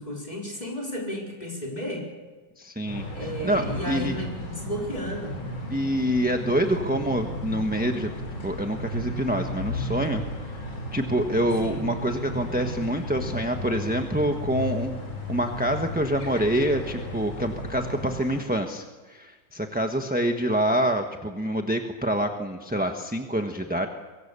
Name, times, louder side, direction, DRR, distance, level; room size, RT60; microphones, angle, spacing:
voice 1, 0.0-2.1 3.1-5.4 11.6-11.8, equal, 20° left, -1 dB, 4.7 m, -33 dB
voice 2, 2.6-4.1 5.7-8.1 8.4-10.2 10.9-15.0 15.3-23.9, right 1 dB, 5° right, 4 dB, 0.9 m, -26 dB
sound 1, 2.9-18.4, left 1 dB, 85° left, 5.1 m, -34 dB
23.5 x 23.0 x 6.8 m, 1.3 s
omnidirectional pair, 2.1 m